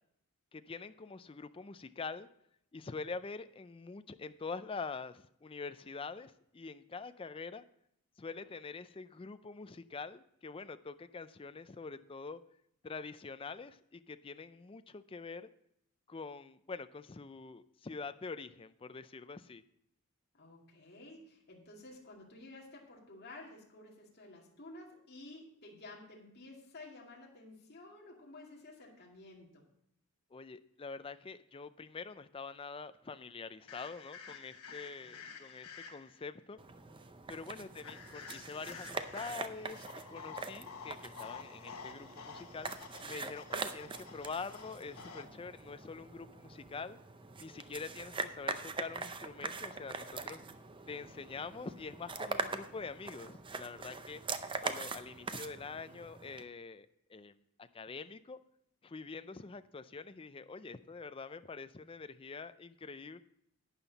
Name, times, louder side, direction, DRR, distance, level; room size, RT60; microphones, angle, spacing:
voice 1, 0.5-2.3 2.7-7.6 8.2-12.4 12.8-15.5 16.1-19.6 30.3-36.6 37.3-42.7 43.0-47.0 47.4-50.5 50.9-54.2 54.6-58.4 58.8-63.2, left 4 dB, 25° left, 11 dB, 0.4 m, -45 dB
voice 2, 20.3-29.6 34.8-35.4 37.5-37.7, left 2 dB, 45° left, -2 dB, 2.4 m, -53 dB
sound 1, 33.7-36.2 37.8-45.2, left 5 dB, 85° left, 1.2 m, -50 dB
sound 2, 36.6-56.4, right 4 dB, 25° right, 0.5 m, -43 dB
11.5 x 8.9 x 4.0 m, 0.72 s
head